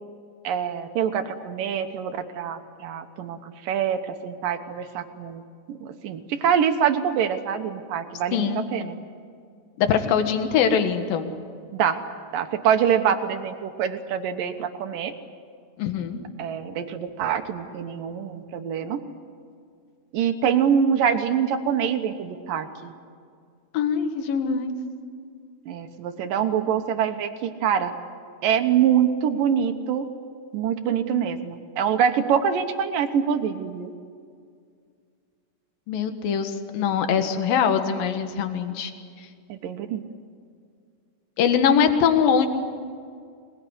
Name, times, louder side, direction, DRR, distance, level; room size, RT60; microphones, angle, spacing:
voice 1, 0.4-5.4 5.7-9.0 11.7-12.0 12.3-15.1 16.4-19.0 20.1-22.9 25.7-27.9 28.4-30.1 30.5-33.9 39.5-40.0, right 8 dB, 70° right, 7 dB, 2.2 m, -25 dB
voice 2, 8.3-8.7 9.8-11.3 15.8-16.2 23.7-24.8 35.9-38.9 41.4-42.5, left 7 dB, 60° left, 7 dB, 2.9 m, -22 dB
25.5 x 20.5 x 9.9 m, 2.2 s
omnidirectional pair, 5.2 m